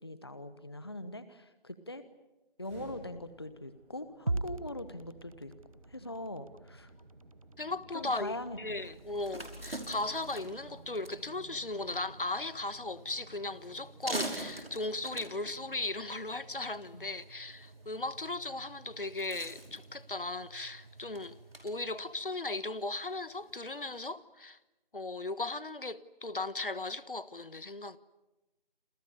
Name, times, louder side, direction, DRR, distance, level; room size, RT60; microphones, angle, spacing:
voice 1, 0.0-2.0 2.6-5.5 5.9-6.9 7.9-8.8 16.9-17.1, left 1 dB, 25° left, 1.0 m, -42 dB
sound 1, 2.6-14.6, right 1 dB, 5° right, 6.8 m, -56 dB
sound 2, 4.3-22.5, right 2 dB, 35° right, 1.1 m, -47 dB
voice 2, 7.6-21.4 21.6-24.6 24.9-28.0, left 2 dB, 65° left, 1.5 m, -37 dB
sound 3, 8.7-24.0, right 1 dB, 80° right, 5.6 m, -46 dB
29.0 x 28.0 x 6.8 m
figure-of-eight pair, 170°, 29 cm